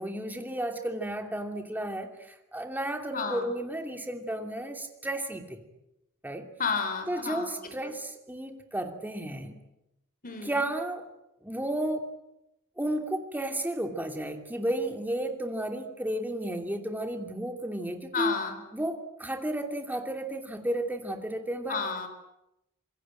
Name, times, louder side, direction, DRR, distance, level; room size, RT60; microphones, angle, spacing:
voice 1, 0.0-2.1 2.5-5.6 6.2-6.5 7.1-9.6 10.4-11.0 11.4-12.1 12.8-18.4 18.7-21.8, right 1 dB, 10° right, 4 dB, 2.8 m, -33 dB
voice 2, 3.1-3.5 6.6-7.9 10.2-10.6 18.1-18.6 21.7-22.1, left 5 dB, 40° left, 8 dB, 4.4 m, -32 dB
26.0 x 22.5 x 9.1 m, 0.89 s
head